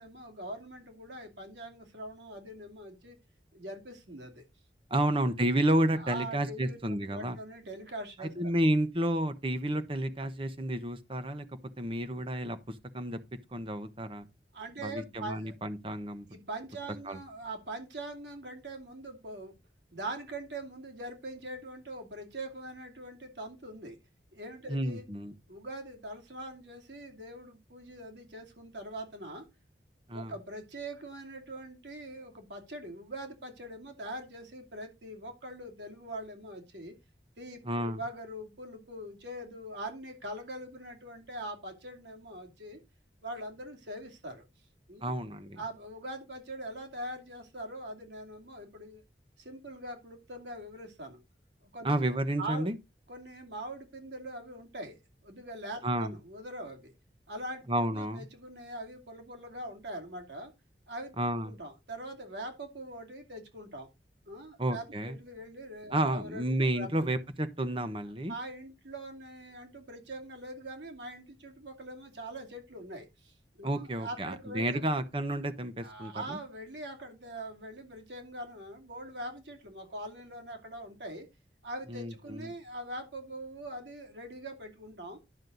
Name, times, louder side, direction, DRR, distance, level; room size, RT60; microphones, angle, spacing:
voice 1, 0.0-3.2 3.5-4.4 5.9-8.3 14.5-15.5 16.3-19.6 19.9-24.0 24.3-25.0 25.5-29.5 30.1-36.9 37.4-42.8 43.2-44.4 44.9-45.0 45.6-49.0 49.4-51.2 51.6-52.0 52.4-52.7 53.1-56.9 57.3-60.5 60.9-61.1 61.4-63.9 64.3-67.0 68.3-74.8 75.8-81.3 81.6-85.2, right 1 dB, 85° right, 2.7 m, -42 dB
voice 2, 4.9-7.4 8.2-11.5 11.8-13.2 13.5-14.3 14.8-16.3 17.1-17.2 24.7-25.3 30.1-30.3 37.6-38.0 45.0-45.6 51.8-52.7 55.8-56.1 57.7-58.3 61.2-61.5 64.6-65.2 65.9-68.3 73.6-76.4 81.9-82.5, right 1 dB, 30° right, 1.1 m, -31 dB
11.0 x 6.4 x 4.0 m
head